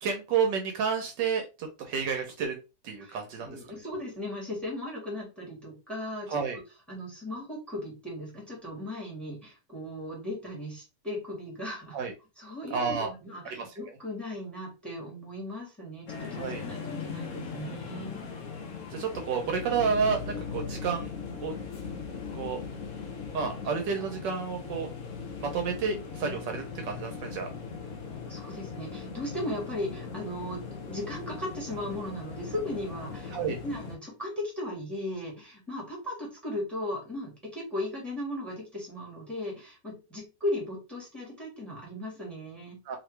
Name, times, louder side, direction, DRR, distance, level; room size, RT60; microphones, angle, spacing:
voice 1, 0.0-2.5 2.8-3.6 6.3-6.6 11.9-12.1 12.7-13.1 13.4-13.7 16.4-16.6 18.9-21.1 21.4-21.5 22.3-22.6 23.3-24.9 25.4-27.5 33.3-33.6 42.9-43.0, right 6 dB, 75° right, 4 dB, 1.3 m, -30 dB
voice 2, 3.0-6.4 6.9-12.0 12.4-18.3 28.1-42.8, left 1 dB, ahead, -2 dB, 1.6 m, -37 dB
sound 1, 16.1-34.0, left 5 dB, 65° left, 0.8 m, -39 dB
3.0 x 3.0 x 3.2 m, 0.29 s
omnidirectional pair, 2.1 m